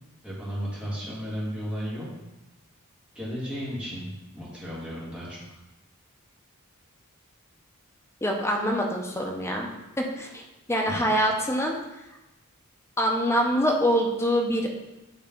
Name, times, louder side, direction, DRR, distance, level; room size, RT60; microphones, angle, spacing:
voice 1, 0.2-2.1 3.2-5.4 10.9-11.0, equal, 5° right, -8 dB, 1.9 m, -34 dB
voice 2, 8.2-9.7 10.0-11.8 13.0-14.7, equal, 10° left, 1 dB, 0.7 m, -25 dB
8.0 x 3.1 x 3.8 m, 1.0 s
head